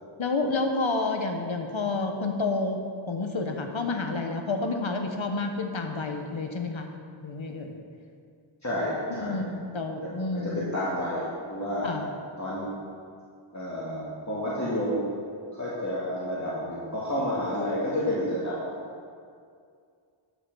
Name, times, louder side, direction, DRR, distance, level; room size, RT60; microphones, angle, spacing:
voice 1, 0.2-6.9 7.2-7.7 9.1-10.7 11.8-12.1, left 3 dB, 70° left, 4 dB, 1.2 m, -29 dB
voice 2, 8.6-9.4 10.3-11.9 12.4-12.8 13.5-15.1 15.6-18.6, equal, 35° left, -8 dB, 2.3 m, -30 dB
12.0 x 6.0 x 6.3 m, 2.3 s
wide cardioid pair, 60°, 49 cm